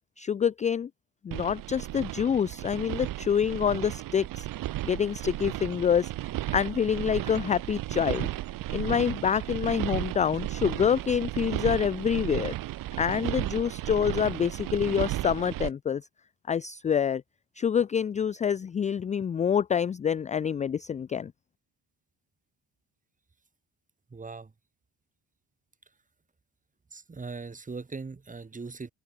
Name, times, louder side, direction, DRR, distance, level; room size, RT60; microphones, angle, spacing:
voice 1, 0.2-0.9 1.2-4.5 4.9-6.1 6.5-8.3 8.7-12.5 13.0-16.0 16.5-17.2 17.6-21.3, left 8 dB, 20° left, 0.3 m, -27 dB
sound 1, 1.3-15.7, right 15 dB, 60° right, 0.8 m, -34 dB
voice 2, 24.1-24.5 26.9-28.9, right 4 dB, 20° right, 3.2 m, -39 dB
open air
cardioid pair, 120°, 37 cm